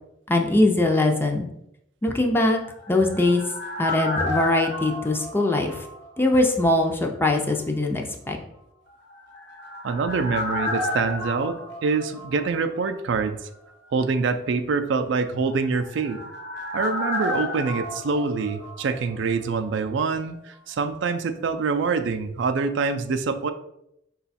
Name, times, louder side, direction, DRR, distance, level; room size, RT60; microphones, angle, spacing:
voice 1, 0.3-1.5 2.0-2.6 2.9-3.4 3.8-5.8 6.2-8.4, left 2 dB, 10° left, 2 dB, 0.4 m, -21 dB
sound 1, 2.5-6.4 6.6-6.7 9.1-12.9 13.1-13.2 15.5-19.3 19.6-19.7, left 1 dB, 60° left, 1.0 m, -32 dB
voice 2, 9.8-13.4 13.9-16.2 16.7-23.5, right 4 dB, 65° right, 8 dB, 0.3 m, -25 dB
4.8 x 2.3 x 4.1 m, 0.80 s
head